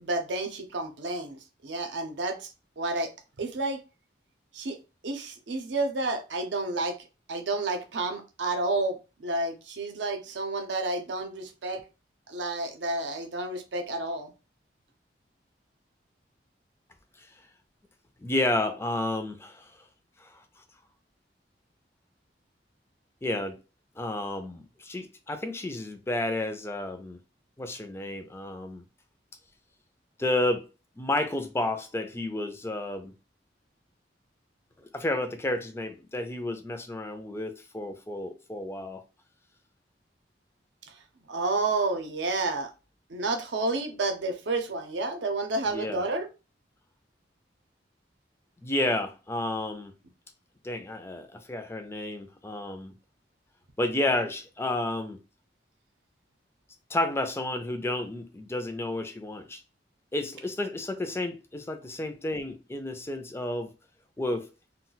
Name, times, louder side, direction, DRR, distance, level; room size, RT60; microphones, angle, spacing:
voice 1, 0.0-2.5 2.8-3.1 3.4-3.8 4.5-4.8 5.0-7.0 7.3-11.8 12.3-14.3 41.3-42.7 43.1-46.3, right 2 dB, 75° right, 0.6 m, -30 dB
voice 2, 18.2-19.8 20.2-20.4 23.2-23.6 24.0-27.2 27.6-28.8 30.2-30.7 31.0-33.1 34.8-39.0 45.6-46.0 48.6-49.9 50.6-52.9 53.8-55.2 56.9-59.6 60.1-63.7 64.2-64.5, left 1 dB, 15° left, 0.3 m, -31 dB
2.3 x 2.1 x 3.8 m
head